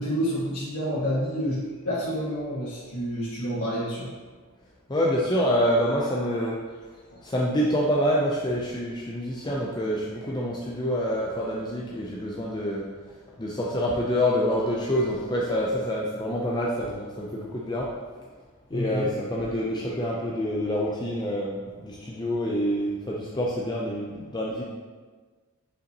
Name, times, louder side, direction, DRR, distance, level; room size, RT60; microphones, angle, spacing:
voice 1, 0.0-4.1 18.7-19.1, equal, 85° left, -11 dB, 1.7 m, -29 dB
voice 2, 4.9-6.6 7.2-12.8 13.4-17.9 18.7-24.6, equal, 20° left, -4 dB, 0.5 m, -26 dB
6.8 x 5.2 x 2.9 m, 1.4 s
head